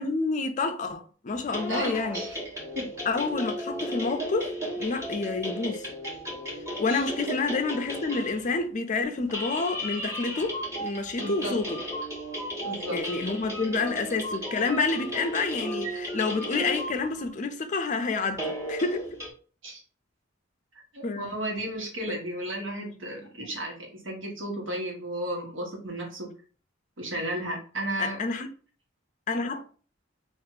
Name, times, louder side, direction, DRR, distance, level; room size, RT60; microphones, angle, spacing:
voice 1, 0.0-2.2 3.1-4.5 4.8-5.8 6.8-11.8 12.9-19.1 21.0-21.3 28.0-28.5 29.3-29.6, left 3 dB, 40° left, 0.4 m, -29 dB
sound 1, 1.3-8.6 9.2-17.3 18.3-19.3, equal, 15° right, 1.3 m, -35 dB
voice 2, 1.7-2.4 2.7-2.9 6.9-7.1 11.2-11.6 12.6-13.0 19.6-19.8 20.9-26.3 27.0-28.2, right 1 dB, 75° right, 1.2 m, -34 dB
2.7 x 2.5 x 3.8 m
head